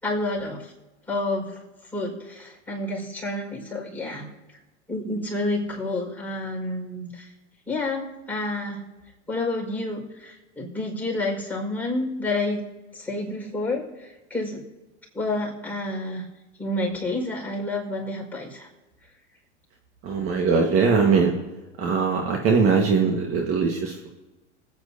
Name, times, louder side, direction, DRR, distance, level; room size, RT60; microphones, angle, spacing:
voice 1, 0.0-0.7 1.1-1.6 1.9-4.3 4.9-7.3 7.7-8.9 9.3-12.6 12.9-14.6 15.1-16.3 16.6-18.7, left 2 dB, 5° left, -3 dB, 4.9 m, -29 dB
voice 2, 20.0-21.3 21.8-24.1, right 5 dB, 40° right, 1 dB, 1.6 m, -21 dB
26.0 x 9.2 x 2.8 m, 1.1 s
hypercardioid pair, 95°, 36 cm